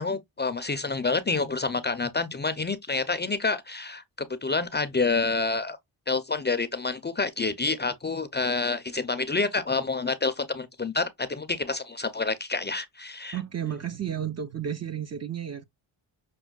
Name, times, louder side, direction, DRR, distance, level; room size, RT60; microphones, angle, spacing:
voice 1, 0.0-4.0 4.4-5.8 6.1-13.4, left 3 dB, 25° left, 0.4 m, -28 dB
voice 2, 13.3-15.6, right 9 dB, 35° right, 0.5 m, -32 dB
6.0 x 2.2 x 2.2 m
cardioid pair, 75°, 48 cm